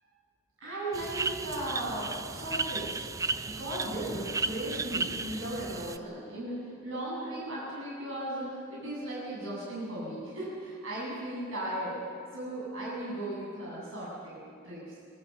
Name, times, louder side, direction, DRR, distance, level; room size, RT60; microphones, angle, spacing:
voice 1, 0.6-3.1 3.4-12.0 12.3-14.9, right 1 dB, 60° right, -6 dB, 7.8 m, -36 dB
sound 1, 0.9-6.0, right 3 dB, 15° right, 0.5 m, -34 dB
26.0 x 19.5 x 7.1 m, 2.4 s
head